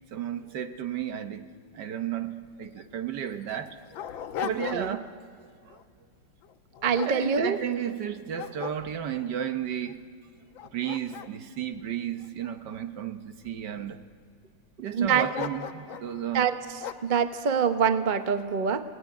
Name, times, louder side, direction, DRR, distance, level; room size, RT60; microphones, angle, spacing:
voice 1, 0.1-1.4 1.7-3.8 4.4-5.1 5.7-5.8 7.0-10.1 10.7-14.0 14.8-16.5, right 9 dB, 65° right, 1.5 m, -33 dB
Dog, 2.4-2.5 2.8-2.9 3.5-5.1 5.5-5.8 6.4-7.9 8.3-9.3 9.9-10.0 10.4-12.8 13.4-14.0 15.3-16.1 16.8-17.2, left 10 dB, 80° left, 1.7 m, -38 dB
voice 2, 4.4-4.9 6.8-7.6 14.9-15.3 16.3-16.6 17.0-18.8, right 6 dB, 45° right, 0.6 m, -25 dB
28.0 x 18.5 x 9.4 m
omnidirectional pair, 2.2 m